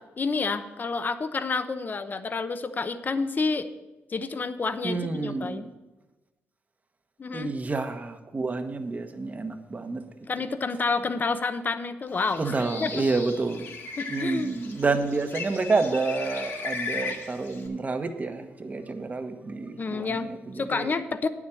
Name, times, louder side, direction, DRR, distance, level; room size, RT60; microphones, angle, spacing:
voice 1, 0.0-3.7 4.1-5.7 7.2-7.5 10.3-12.5 12.8-12.9 14.0-14.5 19.8-20.3 20.5-21.3, left 4 dB, 40° left, 11 dB, 0.9 m, -29 dB
voice 2, 4.8-5.7 7.3-10.0 12.4-13.7 14.1-20.9, right 3 dB, 35° right, 7 dB, 1.2 m, -29 dB
Bird, 12.1-17.7, left 4 dB, 70° left, 2.1 m, -37 dB
9.5 x 7.3 x 7.1 m, 1.1 s
cardioid pair, 70°, 5 cm